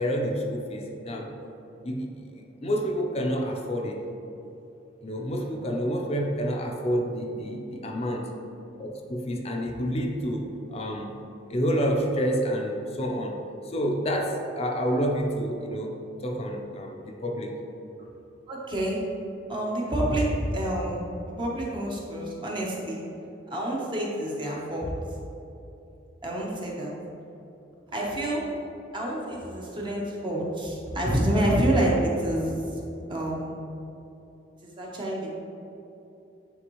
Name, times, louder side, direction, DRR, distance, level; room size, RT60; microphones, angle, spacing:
voice 1, 0.0-1.3 1.8-2.1 2.6-4.0 5.0-8.3 8.8-11.2 11.5-17.5, equal, 35° left, 2 dB, 0.6 m, -29 dB
voice 2, 18.5-19.0 19.5-23.0 23.5-24.9 26.2-26.9 27.9-28.5 28.9-32.8 33.1-33.6 34.6-35.3, right 1 dB, 25° right, -3 dB, 0.9 m, -28 dB
9.4 x 3.5 x 3.1 m, 2.9 s
head